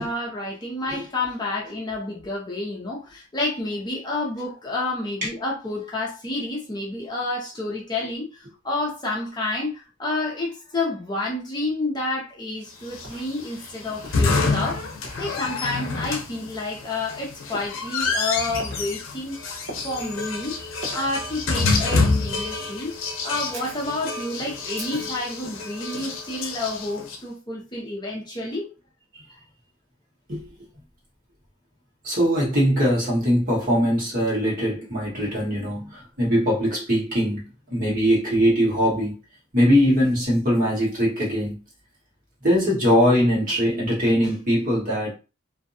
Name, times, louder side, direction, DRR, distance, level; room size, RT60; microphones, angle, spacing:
voice 1, 0.0-19.4 19.8-20.5 20.9-22.9 23.2-28.7, left 2 dB, 20° left, 0.6 m, -29 dB
sound 1, 12.3-12.4 13.0-13.3 14.0-14.3 15.0-15.3 16.0-16.3 17.5-17.8 18.6-18.8 19.7-20.0 20.8-21.0 21.9-22.1 23.5-23.9 24.8-25.2, right 1 dB, 75° right, 1.0 m, -39 dB
sound 2, 12.9-27.2, left 3 dB, 85° left, 0.6 m, -27 dB
voice 2, 32.0-39.2 39.5-41.6 42.4-45.2, equal, 45° right, 1.4 m, -21 dB
2.6 x 2.2 x 2.6 m
head